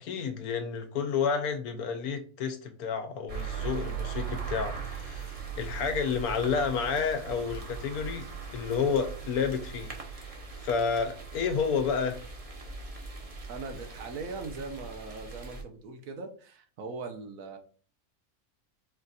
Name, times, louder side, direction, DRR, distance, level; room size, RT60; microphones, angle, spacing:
voice 1, 0.0-8.3 8.5-12.2, left 6 dB, 80° left, 1.2 m, -30 dB
sound 1, 3.3-15.6, right 6 dB, 35° right, 0.6 m, -39 dB
voice 2, 13.5-17.6, right 3 dB, 65° right, 1.2 m, -40 dB
4.4 x 2.5 x 4.0 m
omnidirectional pair, 1.6 m